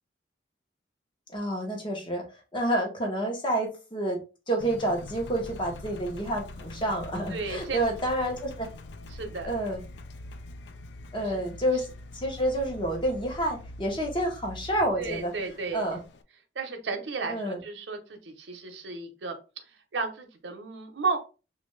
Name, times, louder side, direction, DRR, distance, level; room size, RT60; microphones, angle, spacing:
voice 1, 1.3-2.2 2.5-4.2 4.5-8.7 9.4-9.8 11.1-11.9 12.1-15.3 15.7-16.0 17.3-17.6, right 1 dB, 25° left, 1 dB, 0.9 m, -29 dB
Engine, 4.6-16.2, left 2 dB, 80° left, 0.4 m, -44 dB
voice 2, 7.3-7.9 9.1-9.5 11.2-11.4 15.0-15.8 16.5-21.2, right 4 dB, 90° right, 5 dB, 0.7 m, -34 dB
3.3 x 2.5 x 3.1 m, 0.32 s
head